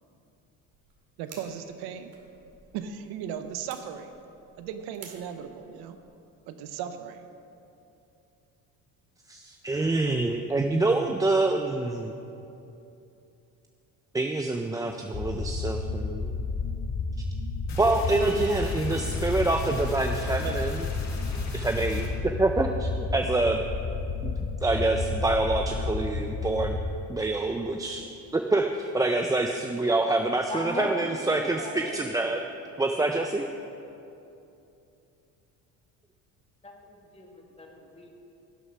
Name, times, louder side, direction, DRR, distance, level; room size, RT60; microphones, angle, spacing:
sound 1, 0.7-6.0, right 5 dB, 60° right, 2.2 m, -53 dB
voice 1, 1.2-2.1 2.7-4.1 4.6-6.0 6.5-7.3, right 8 dB, 80° right, 8 dB, 0.8 m, -37 dB
voice 2, 9.3-12.1 14.1-16.3 17.8-20.9 21.5-23.6 24.2-24.3 24.6-26.8 27.1-28.1 28.3-32.4 32.8-33.4, right 2 dB, 10° right, 4 dB, 0.4 m, -26 dB
sound 2, 15.1-26.9, left 4 dB, 30° left, 0.9 m, -31 dB
sound 3, 17.7-22.1, left 2 dB, 50° left, 1.8 m, -42 dB
voice 3, 30.5-32.1 36.6-38.1, left 1 dB, 15° left, 1 dB, 1.7 m, -37 dB
11.5 x 8.0 x 5.5 m, 2.8 s
cardioid pair, 105°, 38 cm